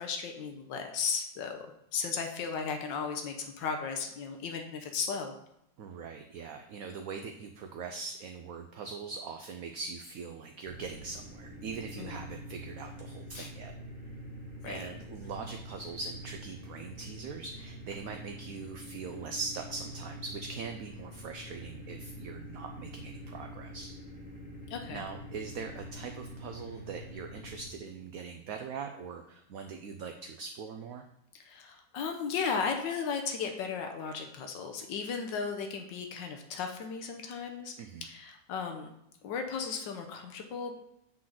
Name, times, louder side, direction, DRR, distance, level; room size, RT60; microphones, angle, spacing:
voice 1, 0.0-1.7 1.9-5.4 12.0-12.2 13.3-13.5 14.6-14.9 24.7-25.1 31.3-37.7 38.0-38.9 39.2-40.8, left 5 dB, 85° left, 4 dB, 1.5 m, -35 dB
voice 2, 5.8-13.7 14.7-23.9 24.9-31.0 37.8-38.0, right 5 dB, 65° right, 5 dB, 0.9 m, -41 dB
sound 1, 10.7-27.7, equal, 35° left, 2.6 m, -45 dB
7.5 x 3.9 x 5.9 m, 0.80 s
omnidirectional pair, 1.9 m